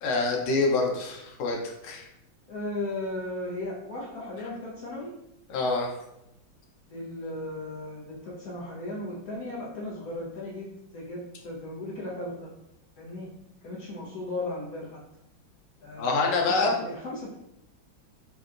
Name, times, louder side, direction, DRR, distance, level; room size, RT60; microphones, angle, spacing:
voice 1, 0.0-1.6 1.8-2.1 5.5-5.9 16.0-16.8, left 3 dB, 90° left, 0 dB, 1.5 m, -26 dB
voice 2, 2.5-5.1 6.9-12.5 13.0-13.3 13.6-15.0 15.8-16.3 16.6-17.4, left 2 dB, 65° left, -5 dB, 1.0 m, -36 dB
3.7 x 2.2 x 2.4 m, 0.85 s
omnidirectional pair, 2.1 m